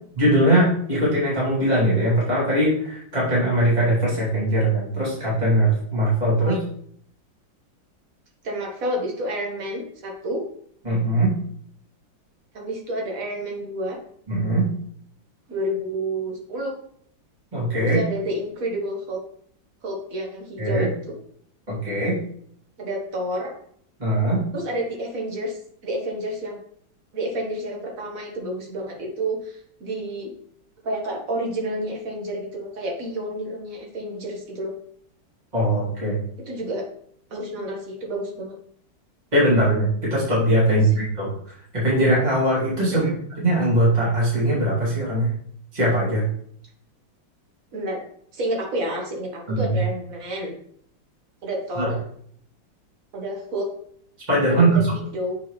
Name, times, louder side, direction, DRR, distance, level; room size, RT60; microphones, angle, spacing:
voice 1, 0.1-6.6 10.8-11.3 14.3-14.7 17.5-18.0 20.6-20.9 21.7-22.2 24.0-24.4 35.5-36.2 39.3-41.3 41.7-43.1 43.4-45.3 45.7-46.2 49.5-49.8 51.8-51.9 54.3-54.8, right 1 dB, 20° right, -7 dB, 2.9 m, -20 dB
voice 2, 8.4-10.4 12.5-14.0 15.5-16.8 17.8-19.2 19.8-21.1 22.8-23.5 24.5-25.6 25.8-26.6 27.1-30.3 30.8-34.7 36.5-36.9 37.3-38.6 40.7-40.8 42.9-43.2 47.7-48.0 48.3-50.6 51.4-52.1 53.1-53.7 54.5-55.4, right 1 dB, 45° right, 0 dB, 1.8 m, -29 dB
8.2 x 4.7 x 3.2 m, 0.65 s
omnidirectional pair, 2.1 m